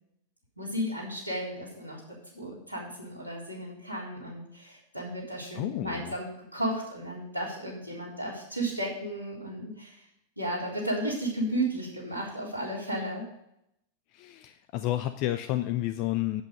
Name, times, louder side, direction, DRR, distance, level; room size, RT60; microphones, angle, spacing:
voice 1, 0.6-2.0 2.3-10.0 10.4-13.3, right 1 dB, 90° left, -4 dB, 3.7 m, -34 dB
voice 2, 5.5-6.1 14.1-16.4, left 14 dB, 45° left, 9 dB, 0.6 m, -30 dB
8.4 x 8.3 x 5.3 m, 0.78 s
figure-of-eight pair, 90°, 0 cm